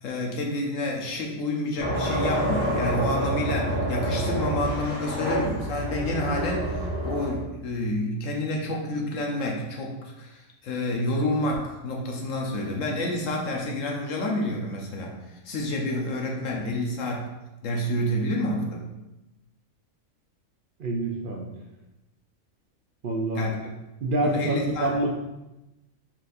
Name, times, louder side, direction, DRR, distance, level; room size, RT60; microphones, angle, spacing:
voice 1, 0.0-15.1 15.4-17.3 17.6-18.8 23.4-23.7 24.2-24.9, left 1 dB, 70° left, 0 dB, 1.1 m, -29 dB
sound 1, 1.8-7.4, right 1 dB, 55° left, 1.4 m, -27 dB
voice 2, 20.8-21.5 23.0-23.5 24.0-25.1, right 1 dB, 60° right, 0 dB, 0.5 m, -26 dB
4.5 x 3.9 x 2.6 m, 0.98 s
omnidirectional pair, 1.4 m